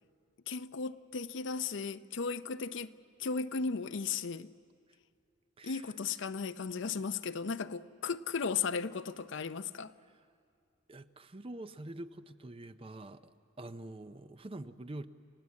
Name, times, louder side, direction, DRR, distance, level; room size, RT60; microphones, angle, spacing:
voice 1, 0.5-2.9 3.2-4.5 5.6-9.9, left 5 dB, 60° left, 0.6 m, -36 dB
voice 2, 5.6-5.9 10.1-10.2 10.9-15.1, right 1 dB, 25° right, 0.6 m, -46 dB
29.5 x 17.0 x 8.4 m
head